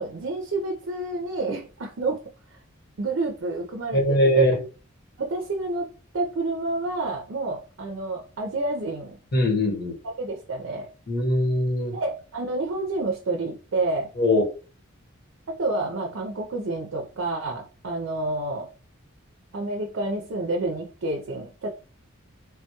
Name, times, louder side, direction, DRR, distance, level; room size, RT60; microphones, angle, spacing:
voice 1, 0.0-2.2 3.0-4.4 5.2-5.9 6.1-9.2 10.0-10.9 11.9-14.1 15.5-18.7 19.5-21.7, right 2 dB, 65° right, 2 dB, 0.5 m, -29 dB
voice 2, 3.9-4.6 9.3-9.9 11.1-11.9 14.2-14.4, left 1 dB, 50° left, 1 dB, 1.0 m, -21 dB
3.3 x 2.2 x 2.8 m, 0.35 s
head